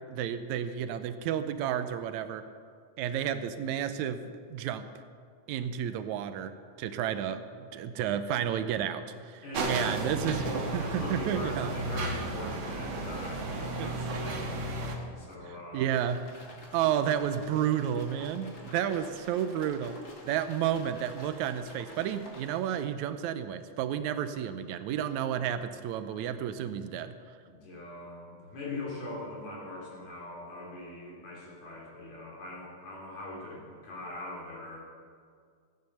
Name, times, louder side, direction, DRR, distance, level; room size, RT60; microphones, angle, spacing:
voice 1, 0.1-2.4 3.0-4.9 5.5-10.4 10.7-11.7 13.8-13.9 15.4-16.2 16.7-20.0 20.2-27.1, right 9 dB, 85° right, 10 dB, 2.0 m, -31 dB
voice 2, 9.4-14.6 15.2-16.1 27.4-34.8, left 1 dB, 70° left, -3 dB, 4.3 m, -41 dB
sound 1, 9.5-14.9, right 2 dB, 50° right, 1.8 m, -33 dB
sound 2, 15.9-22.8, left 1 dB, 40° left, 1.7 m, -50 dB
14.5 x 9.2 x 6.5 m, 2.1 s
omnidirectional pair, 3.3 m